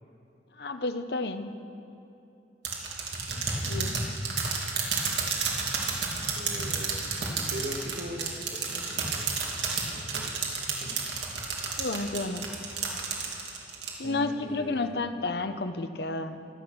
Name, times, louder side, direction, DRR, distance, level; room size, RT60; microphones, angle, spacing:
voice 1, 0.6-1.5 3.7-4.0 11.8-12.4 14.0-16.5, left 3 dB, 65° left, 9 dB, 0.8 m, -31 dB
sound 1, 2.7-13.9, right 5 dB, 85° right, 2.5 m, -30 dB
voice 2, 3.3-4.1 6.3-7.1 7.5-9.4 9.9-10.3 10.7-11.0 14.0-15.0, equal, 65° right, 3 dB, 1.5 m, -40 dB
24.0 x 9.1 x 6.2 m, 2.6 s
head